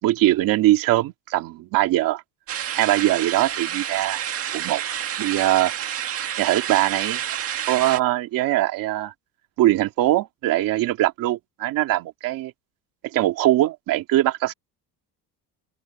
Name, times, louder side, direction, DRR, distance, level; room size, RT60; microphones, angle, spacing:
voice 1, 0.0-2.2 2.7-4.2 4.5-4.8 5.2-5.7 6.4-7.2 7.7-9.1 9.6-12.5 13.1-14.5, right 15 dB, 60° right, 2.6 m, -21 dB
sound 1, 2.5-8.0, right 10 dB, 40° right, 1.9 m, -29 dB
open air
cardioid pair, 180°, 37 cm